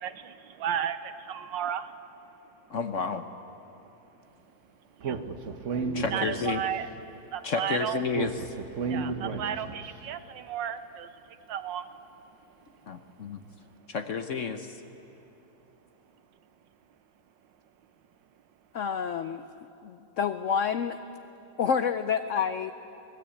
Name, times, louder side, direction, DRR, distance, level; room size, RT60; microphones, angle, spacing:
voice 1, 0.0-1.9 5.0-5.2 6.1-6.9 7.3-8.0 8.9-11.1 11.5-11.9, right 9 dB, 75° right, 12 dB, 1.5 m, -33 dB
voice 2, 2.7-3.2 5.9-6.6 7.4-8.5 12.9-13.4 13.9-14.8, left 5 dB, 55° left, 8 dB, 1.0 m, -31 dB
Speech, 5.0-6.8 8.1-9.9, right 4 dB, 45° right, 1.2 m, -33 dB
voice 3, 18.7-19.4 19.8-21.0 21.6-22.7, left 7 dB, 85° left, 10 dB, 0.6 m, -28 dB
23.5 x 19.0 x 8.6 m, 2.9 s
omnidirectional pair, 2.1 m